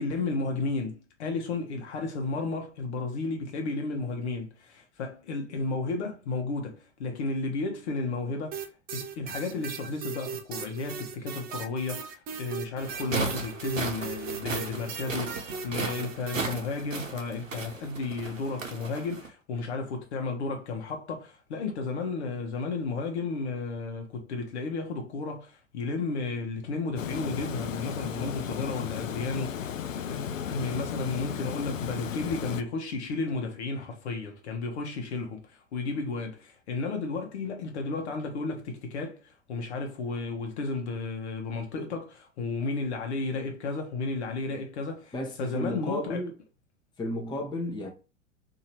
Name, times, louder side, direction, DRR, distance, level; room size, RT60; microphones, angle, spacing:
voice 1, 0.0-8.6 8.9-46.2, left 3 dB, 60° left, 1.1 m, -33 dB
sound 1, 8.5-16.5, right 6 dB, 25° right, 0.5 m, -38 dB
sound 2, 12.8-19.3, right 4 dB, 85° right, 0.8 m, -35 dB
Water, 27.0-32.6, left 8 dB, 80° left, 0.5 m, -35 dB
voice 2, 45.1-46.3 47.0-47.9, left 1 dB, 10° left, 0.8 m, -33 dB
2.8 x 2.8 x 4.4 m
figure-of-eight pair, 90°, 38 cm